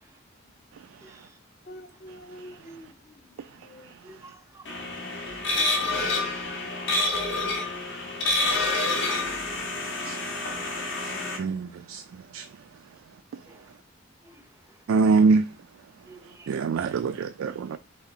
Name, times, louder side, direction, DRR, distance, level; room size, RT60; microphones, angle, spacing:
voice 1, 1.7-3.1 3.6-3.9 6.0-6.2, equal, 35° left, 0.5 m, -46 dB
voice 2, 4.0-4.6 7.6-8.0 10.6-10.8 13.5-13.6 14.2-14.3 16.1-16.5, right 1 dB, 15° right, 0.6 m, -50 dB
sound 1, 4.7-11.4, left 2 dB, 65° left, 1.3 m, -28 dB
voice 3, 11.4-12.0 12.3-12.5 14.9-15.5 16.5-17.8, right 4 dB, 80° right, 0.3 m, -23 dB
4.2 x 2.9 x 3.9 m
head